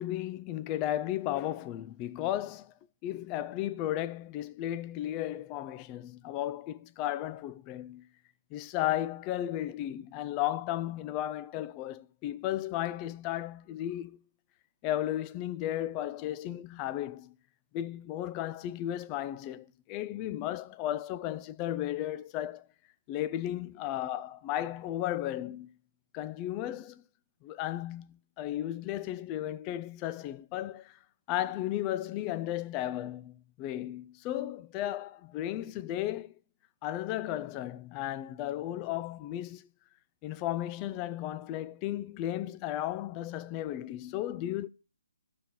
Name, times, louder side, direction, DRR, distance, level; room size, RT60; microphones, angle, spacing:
voice 1, 0.0-2.7 3.0-8.0 8.5-14.2 14.8-17.3 17.7-22.7 23.1-25.7 26.1-27.0 27.4-31.0 31.3-36.4 36.8-39.7 40.2-44.7, left 13 dB, 25° left, 0.4 m, -34 dB
12.0 x 6.7 x 3.0 m
hypercardioid pair, 150°, 0 cm